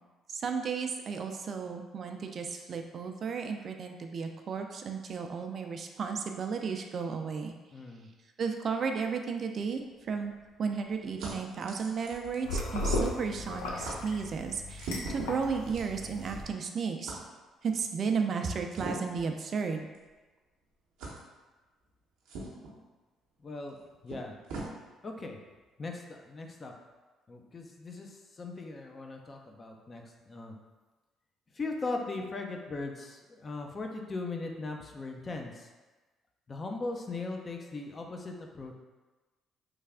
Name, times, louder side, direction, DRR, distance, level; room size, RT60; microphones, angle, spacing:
voice 1, 0.3-7.5 8.4-10.3 10.6-17.2 17.6-19.9, right 5 dB, 50° right, 4 dB, 0.4 m, -34 dB
voice 2, 7.7-8.1 23.4-23.8 24.0-24.4 25.0-25.4 25.8-26.7 27.3-30.6 31.5-35.7 36.5-38.7, left 3 dB, 35° left, 2 dB, 0.5 m, -39 dB
sound 1, 9.6-13.1 13.4-13.5 13.8-14.0 14.7-16.6 17.0-17.2 18.7-19.3 19.9-20.1 21.0-21.2 22.3-22.7 23.7-23.8 24.1-24.7, right 2 dB, 80° right, 0.7 m, -42 dB
sound 2, 12.4-16.4, left 1 dB, 85° left, 0.5 m, -35 dB
3.3 x 2.3 x 3.5 m, 1.2 s
hypercardioid pair, 55°, 0 cm